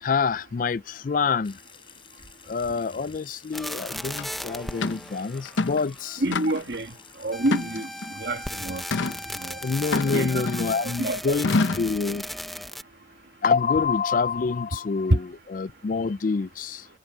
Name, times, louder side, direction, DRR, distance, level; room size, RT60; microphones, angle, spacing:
voice 1, 0.0-1.6 2.5-6.2 9.6-12.3 13.4-16.9, left 5 dB, 45° left, 0.4 m, -26 dB
Water tap faucet / Sink (filling or washing) / Trickle dribble, 1.4-10.0, left 7 dB, 30° left, 7.0 m, -51 dB
sound 1, 3.5-6.4 7.3-12.8, equal, ahead, 0.7 m, -37 dB
sound 2, 4.2-4.3 4.8-5.0 5.5-5.9 6.3-6.8 7.5-8.1 8.9-9.2 9.9-10.8 11.4-11.9, left 3 dB, 85° left, 0.8 m, -26 dB
voice 2, 6.2-6.9 7.2-7.9 8.1-8.8 9.4-9.6 10.1-10.4 11.0-11.2 15.1-15.2, right 1 dB, 60° right, 1.7 m, -26 dB
head